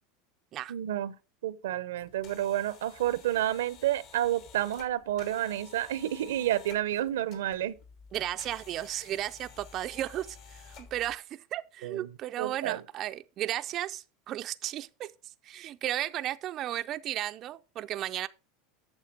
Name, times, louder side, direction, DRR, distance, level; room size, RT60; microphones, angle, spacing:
voice 1, 0.7-1.1 1.4-7.8 11.8-12.1 12.4-12.8, right 12 dB, 85° right, 0.7 m, -30 dB
sound 1, 2.0-11.1, left 6 dB, 60° left, 2.9 m, -52 dB
voice 2, 8.1-15.1 15.4-18.3, right 13 dB, 45° right, 0.4 m, -34 dB
9.0 x 6.8 x 5.1 m
supercardioid pair, 120°, 0 cm